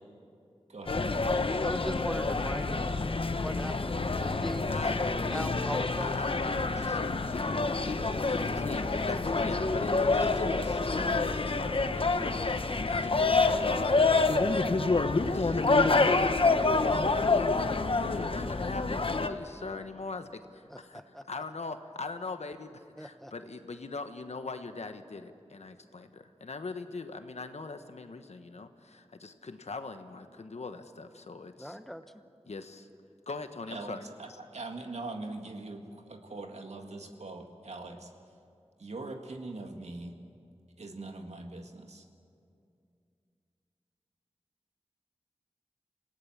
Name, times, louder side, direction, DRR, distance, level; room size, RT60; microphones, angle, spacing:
voice 1, 0.7-1.4 33.7-38.1 38.8-40.2 40.8-42.1, right 2 dB, 85° right, 4 dB, 1.9 m, -42 dB
sound 1, 0.9-19.3, left 3 dB, 55° left, 1.0 m, -27 dB
voice 2, 1.6-3.1 3.4-3.8 4.1-4.7 5.3-6.2 13.5-13.6 20.7-21.2 23.0-23.3 31.6-32.2, equal, 5° left, 10 dB, 1.0 m, -39 dB
voice 3, 4.7-5.5 6.0-7.0 7.3-8.0 8.3-21.0 21.3-31.8 32.5-32.9 33.3-34.0, left 3 dB, 90° left, 8 dB, 1.2 m, -41 dB
27.5 x 18.0 x 7.3 m, 2.4 s
wide cardioid pair, 70°, 11 cm